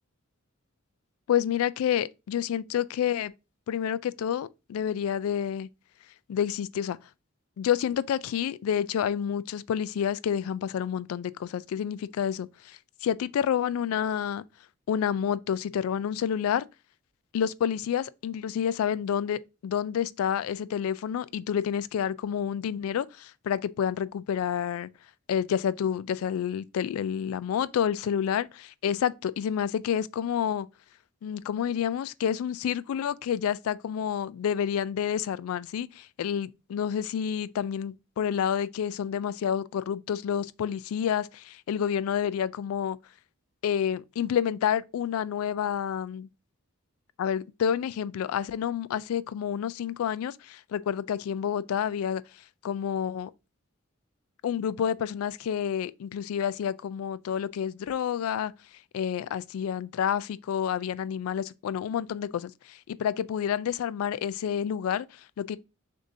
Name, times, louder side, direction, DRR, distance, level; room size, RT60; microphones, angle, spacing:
voice 1, 1.3-3.3 3.7-5.7 6.3-7.0 7.6-14.4 14.9-16.7 17.3-24.9 25.3-30.7 31.2-43.0 43.6-46.3 47.2-52.2 52.6-53.3 54.4-58.5 58.9-65.6, left 8 dB, 85° left, 0.3 m, -29 dB
6.3 x 2.6 x 2.6 m
head